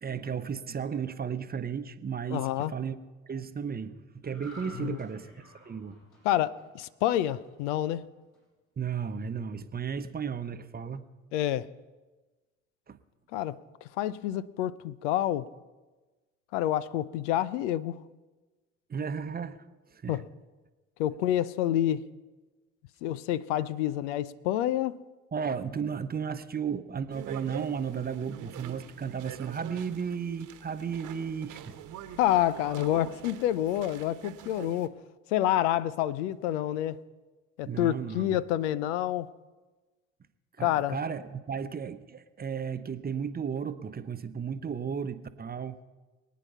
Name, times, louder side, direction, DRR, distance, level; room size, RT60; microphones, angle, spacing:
voice 1, 0.0-3.0 3.2-6.0 8.8-11.0 12.9-13.0 18.9-19.6 19.9-20.2 25.3-31.8 37.7-38.4 40.6-45.8, right 7 dB, 25° right, 0.9 m, -34 dB
voice 2, 2.3-2.7 4.8-5.0 6.2-8.0 11.3-11.7 13.3-13.6 14.0-15.5 16.5-18.0 20.1-20.2 21.0-22.0 23.0-25.0 32.2-34.9 35.3-37.0 37.6-39.3 40.6-41.0, left 12 dB, 65° left, 0.6 m, -28 dB
sound 1, 4.2-7.7 8.1-8.4, equal, 50° left, 7.1 m, -52 dB
sound 2, 27.1-34.9, right 10 dB, 50° right, 1.2 m, -45 dB
23.5 x 9.3 x 5.6 m
figure-of-eight pair, 60°, 38 cm